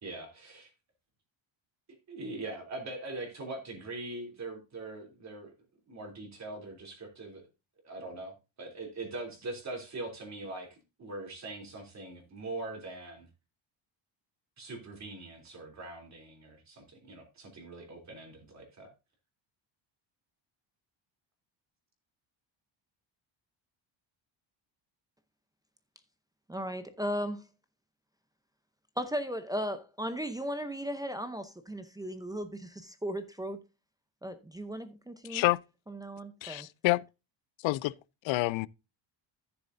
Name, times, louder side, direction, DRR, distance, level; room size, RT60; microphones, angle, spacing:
voice 1, 0.0-0.7 2.1-5.5 5.9-7.4 7.8-13.3 14.6-18.9, right 2 dB, 35° right, 3.2 m, -42 dB
voice 2, 26.5-27.4 29.0-33.6 34.2-35.4 35.9-36.7, equal, 10° right, 0.6 m, -36 dB
voice 3, 35.3-35.6 36.4-37.0 37.6-37.9 38.2-38.7, left 20 dB, 70° left, 0.5 m, -28 dB
13.5 x 7.0 x 2.6 m
cardioid pair, 155°, 47 cm